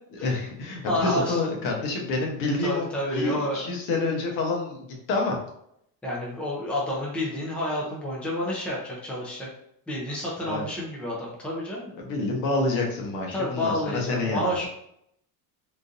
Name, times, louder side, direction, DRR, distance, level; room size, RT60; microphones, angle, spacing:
voice 1, 0.2-2.8 3.1-5.4 10.5-10.7 12.0-14.6, left 3 dB, 70° left, 0 dB, 1.1 m, -28 dB
voice 2, 0.9-1.4 2.6-3.7 6.0-9.5 9.9-11.9 13.3-14.6, left 1 dB, 5° left, -4 dB, 0.5 m, -29 dB
3.7 x 2.6 x 2.5 m, 0.73 s
cardioid pair, 160°, 41 cm